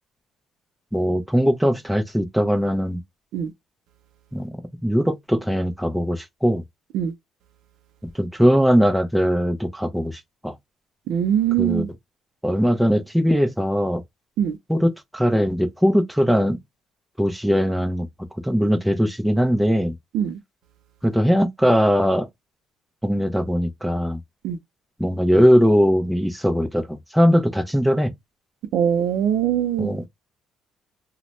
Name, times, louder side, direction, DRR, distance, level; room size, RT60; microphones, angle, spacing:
voice 1, 0.9-3.0 4.3-4.5 4.8-6.6 8.1-10.6 11.6-11.8 12.4-14.0 14.7-16.6 17.2-18.1 18.4-19.9 21.0-22.3 23.0-24.2 25.0-28.1 29.8-30.1, equal, ahead, 0.6 m, -20 dB
voice 2, 11.1-11.9 14.4-14.5 20.1-20.3 24.4-24.6 28.7-29.9, right 9 dB, 80° right, 0.4 m, -21 dB
2.7 x 2.1 x 3.0 m
cardioid pair, 95°, 0 cm